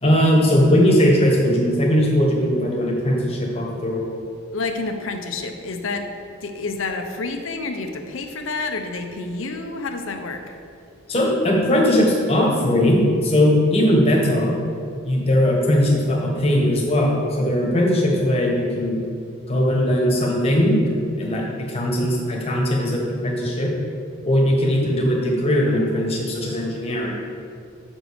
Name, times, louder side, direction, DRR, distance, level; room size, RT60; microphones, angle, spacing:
voice 1, 0.0-4.2 11.1-14.6 15.0-19.0 19.5-20.8 21.2-23.7 24.2-27.1, equal, 30° left, -2 dB, 1.4 m, -19 dB
voice 2, 4.5-6.1 6.4-10.4, left 3 dB, 65° left, 5 dB, 0.8 m, -29 dB
6.2 x 5.2 x 6.4 m, 2.4 s
head